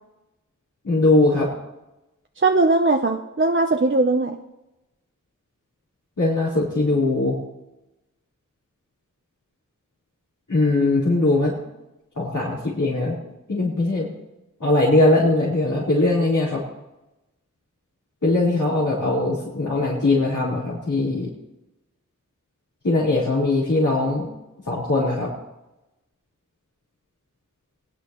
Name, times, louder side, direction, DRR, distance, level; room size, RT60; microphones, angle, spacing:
voice 1, 0.8-1.5 6.2-7.4 10.5-11.5 12.1-13.1 13.5-14.1 14.6-16.6 18.2-21.3 22.8-24.3 24.6-25.3, left 2 dB, 65° left, -9 dB, 4.2 m, -20 dB
voice 2, 2.4-4.4, right 3 dB, 35° right, 3 dB, 0.8 m, -19 dB
23.5 x 9.9 x 3.1 m, 0.97 s
wide cardioid pair, 55°, 33 cm